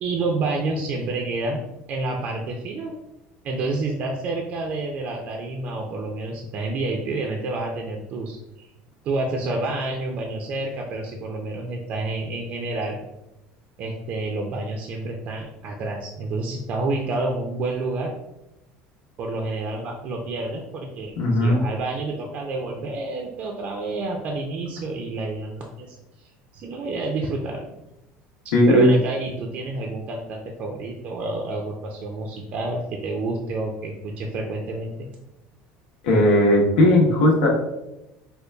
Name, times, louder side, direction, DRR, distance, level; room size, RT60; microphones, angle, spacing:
voice 1, 0.0-1.6 1.9-2.9 3.4-8.7 9.0-13.0 13.8-18.1 19.2-21.1 21.4-27.7 28.7-35.1, right 2 dB, 40° right, 1 dB, 0.4 m, -29 dB
voice 2, 21.2-21.6 28.5-28.9 36.0-37.5, left 1 dB, 85° left, -2 dB, 1.0 m, -17 dB
5.0 x 2.3 x 2.2 m, 0.92 s
cardioid pair, 165°, 4 cm